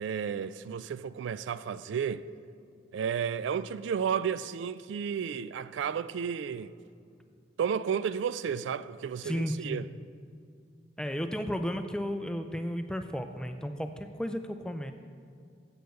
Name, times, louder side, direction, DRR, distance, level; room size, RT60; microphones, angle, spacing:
voice 1, 0.0-2.2 2.9-6.7 7.6-9.8, right 7 dB, 85° right, 0.3 m, -32 dB
voice 2, 9.2-9.8 11.0-14.9, equal, 5° left, 0.3 m, -33 dB
8.0 x 6.7 x 6.4 m
head